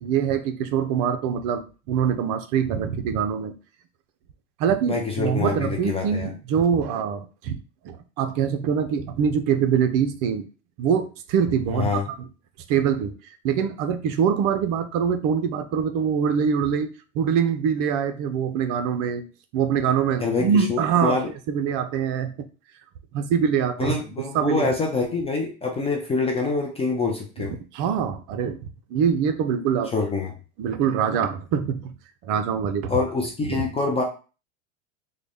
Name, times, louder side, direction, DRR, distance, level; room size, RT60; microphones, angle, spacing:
voice 1, 0.0-3.5 4.6-7.6 7.8-10.5 10.8-12.3 12.7-13.1 13.4-16.9 17.1-19.3 19.5-21.2 21.5-22.3 23.1-23.9 24.3-24.7 27.4-28.6 28.9-29.9 30.6-31.9 32.2-33.0 33.4-33.7, right 7 dB, 55° right, 8 dB, 0.6 m, -24 dB
voice 2, 4.9-6.3 11.7-12.1 20.2-21.3 23.8-27.5 29.9-30.3 32.9-34.0, left 4 dB, 15° left, 0 dB, 0.4 m, -25 dB
3.8 x 2.2 x 3.3 m, 0.34 s
supercardioid pair, 130°, 38 cm